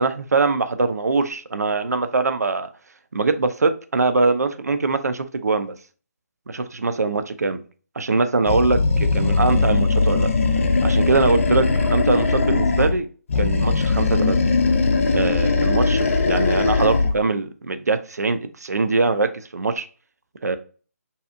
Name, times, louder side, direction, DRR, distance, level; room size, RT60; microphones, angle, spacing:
voice 1, 0.0-2.7 3.1-5.7 6.5-7.6 8.0-10.3 10.8-13.1 13.4-14.4 15.1-19.9 20.4-20.6, right 3 dB, 75° right, 10 dB, 0.4 m, -22 dB
Animal, 8.5-13.0 13.3-17.2, left 3 dB, 55° left, 0.4 m, -20 dB
2.7 x 2.4 x 2.4 m, 0.39 s
figure-of-eight pair, 145°, 9 cm